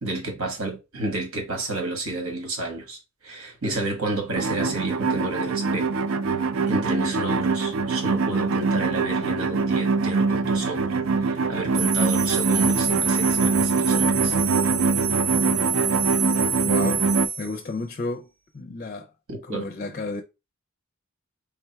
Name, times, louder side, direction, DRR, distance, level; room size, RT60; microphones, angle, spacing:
voice 1, 0.0-5.9 6.7-14.4 19.3-19.6, right 2 dB, 85° right, 1.4 m, -30 dB
sound 1, 4.4-17.3, right 4 dB, 65° right, 0.4 m, -23 dB
sound 2, 11.7-17.5, right 7 dB, 40° right, 0.7 m, -27 dB
voice 2, 16.6-17.1 17.4-18.3 18.5-19.1 19.4-20.2, left 3 dB, 35° left, 0.4 m, -32 dB
3.5 x 2.3 x 4.5 m
head